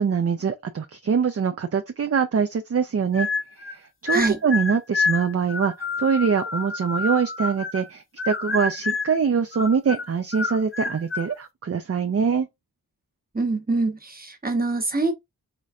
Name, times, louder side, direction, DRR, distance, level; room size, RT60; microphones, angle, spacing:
voice 1, 0.0-3.3 3.6-12.5, right 6 dB, 40° right, 0.4 m, -24 dB
sound 1, 3.1-3.8 4.1-7.9 8.2-9.2 9.5-11.3, left 4 dB, 35° left, 0.6 m, -28 dB
voice 2, 13.3-15.1, right 3 dB, 25° right, 1.0 m, -24 dB
3.9 x 3.1 x 2.4 m
wide cardioid pair, 55°, 38 cm